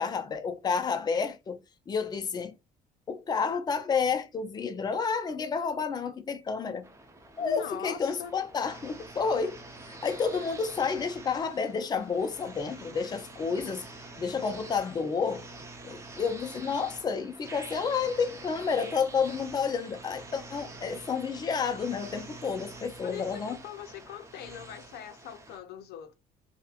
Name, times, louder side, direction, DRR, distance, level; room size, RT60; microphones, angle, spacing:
voice 1, 0.0-1.6 1.9-2.5 3.1-6.9 7.4-9.6 10.0-13.8 14.2-15.5 15.8-23.6, left 5 dB, 25° left, 0.4 m, -30 dB
sound 1, 6.8-25.6, right 2 dB, 15° right, 0.6 m, -46 dB
voice 2, 7.4-8.3 23.0-26.1, left 10 dB, 75° left, 0.5 m, -42 dB
2.9 x 2.1 x 2.3 m
cardioid pair, 110°, 17 cm